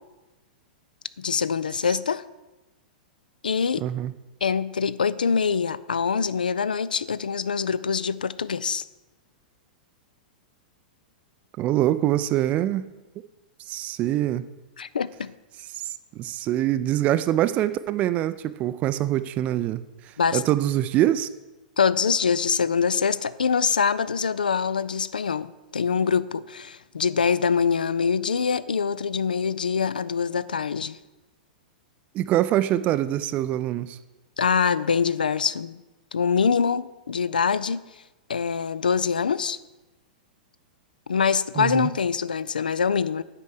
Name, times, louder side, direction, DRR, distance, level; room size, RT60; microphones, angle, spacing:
voice 1, 1.2-2.2 3.4-3.9 4.4-8.8 14.8-15.3 20.2-20.4 21.8-31.0 34.4-35.8 36.1-37.8 38.3-39.6 41.1-43.2, left 6 dB, 75° left, 0.4 m, -24 dB
voice 2, 3.8-4.1 11.6-12.9 13.7-14.4 15.8-21.3 32.1-34.0 41.6-41.9, right 13 dB, 30° right, 0.3 m, -24 dB
8.5 x 5.2 x 6.3 m
figure-of-eight pair, 100°, 5 cm